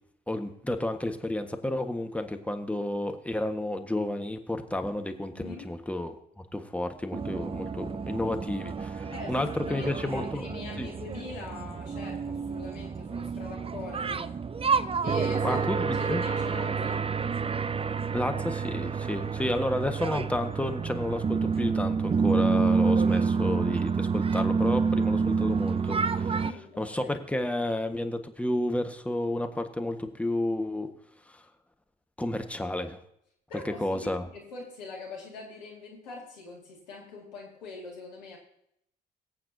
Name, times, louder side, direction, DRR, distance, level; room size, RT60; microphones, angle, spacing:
voice 1, 0.3-6.1 6.5-10.5 10.8-10.9 15.4-16.2 18.1-30.9 31.3-31.4 32.2-33.0 33.6-34.2, left 1 dB, 5° left, 7 dB, 1.5 m, -31 dB
voice 2, 5.4-5.7 9.0-14.3 15.0-15.7 16.0-17.1 26.4-27.2 33.5-38.4, left 4 dB, 90° left, -1 dB, 2.3 m, -43 dB
sound 1, 7.1-26.5, right 5 dB, 25° right, 0.6 m, -28 dB
22.0 x 8.6 x 2.8 m, 0.74 s
hypercardioid pair, 45°, 21 cm